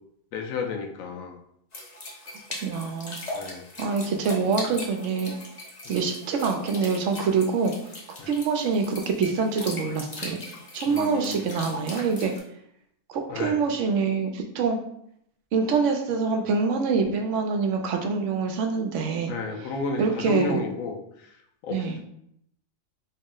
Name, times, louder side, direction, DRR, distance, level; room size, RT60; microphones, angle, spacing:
voice 1, 0.3-1.4 3.3-3.6 5.8-5.9 8.2-8.3 10.9-11.4 13.3-13.6 19.3-21.3 21.6-21.9, left 4 dB, 90° left, 4 dB, 1.0 m, -32 dB
sound 1, 1.7-12.4, left 2 dB, 40° left, 0.7 m, -40 dB
voice 2, 2.6-3.2 3.8-5.3 5.9-7.7 8.3-10.4 10.7-12.3 13.1-14.8 15.5-19.3 20.0-20.7 21.7-22.0, right 5 dB, 70° right, 4 dB, 0.9 m, -25 dB
4.1 x 2.1 x 3.7 m, 0.73 s
omnidirectional pair, 1.4 m